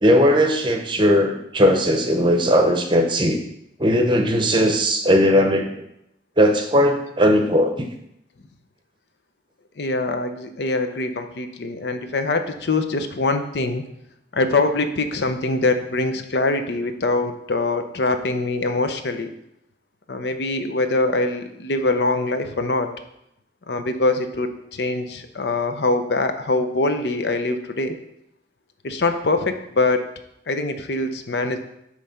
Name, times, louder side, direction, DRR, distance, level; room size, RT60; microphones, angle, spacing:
voice 1, 0.0-3.4 3.8-5.7 6.4-7.9, equal, 25° right, 5 dB, 0.7 m, -18 dB
voice 2, 9.8-13.8 14.3-19.3 20.1-22.9 23.7-28.0 28.8-30.0 30.5-31.6, left 2 dB, 70° left, 8 dB, 0.6 m, -23 dB
8.6 x 3.2 x 5.7 m, 0.79 s
head